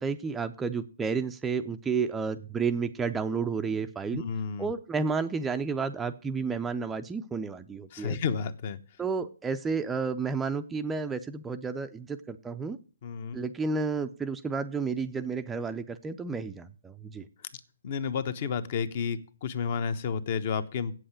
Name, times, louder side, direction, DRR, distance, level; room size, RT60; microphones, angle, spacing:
voice 1, 0.0-4.2 4.6-8.2 9.0-12.8 13.3-17.3, right 5 dB, 10° right, 8 dB, 0.5 m, -31 dB
voice 2, 4.1-4.7 7.9-8.8 13.0-13.4 17.8-20.9, left 6 dB, 45° left, 12 dB, 1.0 m, -31 dB
8.1 x 7.7 x 8.8 m, 0.40 s
hypercardioid pair, 150°, 0 cm